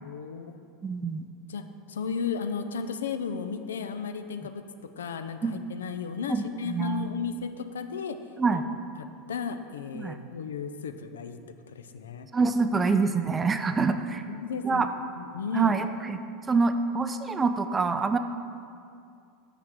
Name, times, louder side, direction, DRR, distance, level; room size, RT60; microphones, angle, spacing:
voice 1, 0.0-0.6 1.5-1.6 1.9-4.6 5.0-8.2 8.5-8.6 9.3-11.4 11.7-12.3 13.8-13.9 14.3-14.9 15.1-15.8, left 6 dB, 70° left, 9 dB, 0.4 m, -34 dB
voice 2, 0.8-1.3 5.4-5.6 6.3-7.1 8.4-8.6 9.9-10.2 12.3-14.2 14.6-14.9 15.5-18.2, right 4 dB, 20° right, 9 dB, 0.4 m, -26 dB
5.8 x 5.7 x 6.4 m, 2.4 s
figure-of-eight pair, 80°, 0 cm